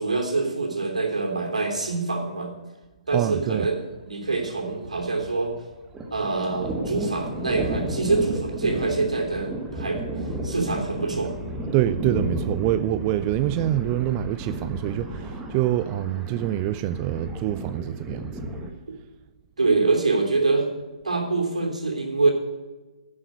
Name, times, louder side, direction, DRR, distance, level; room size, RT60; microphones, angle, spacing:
voice 1, 0.0-2.5 3.1-5.5 6.1-10.0 10.4-11.3 19.6-20.7 21.0-22.3, right 3 dB, 75° right, 3.1 m, -25 dB
Thunder, 3.1-3.3 3.6-3.7 3.9-5.5 5.7-18.7, right 1 dB, 10° right, 1.5 m, -33 dB
voice 2, 3.1-3.7 11.7-18.3, right 13 dB, 25° right, 0.3 m, -25 dB
11.0 x 6.4 x 8.2 m
figure-of-eight pair, 130°, 4 cm